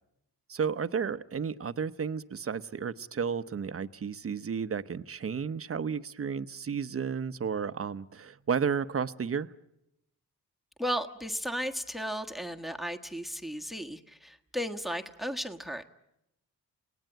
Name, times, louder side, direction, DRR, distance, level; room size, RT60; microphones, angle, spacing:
voice 1, 0.5-9.5, right 6 dB, 40° right, 13 dB, 0.9 m, -32 dB
voice 2, 10.8-15.8, equal, ahead, 7 dB, 1.4 m, -35 dB
27.5 x 18.5 x 9.1 m, 0.87 s
cardioid pair, 75°, 35 cm